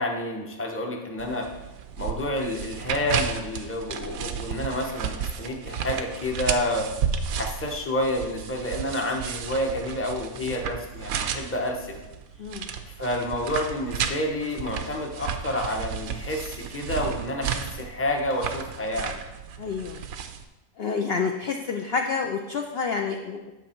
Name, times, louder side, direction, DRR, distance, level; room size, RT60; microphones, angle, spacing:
voice 1, 0.0-1.5 2.0-6.9 7.3-12.0 12.9-19.2, left 1 dB, 10° left, 1 dB, 0.8 m, -29 dB
sound 1, 1.2-20.4, right 7 dB, 80° right, 1.1 m, -33 dB
voice 2, 19.6-20.0 20.8-23.5, left 5 dB, 60° left, 3 dB, 0.7 m, -28 dB
9.1 x 6.3 x 4.4 m, 1.1 s
omnidirectional pair, 1.5 m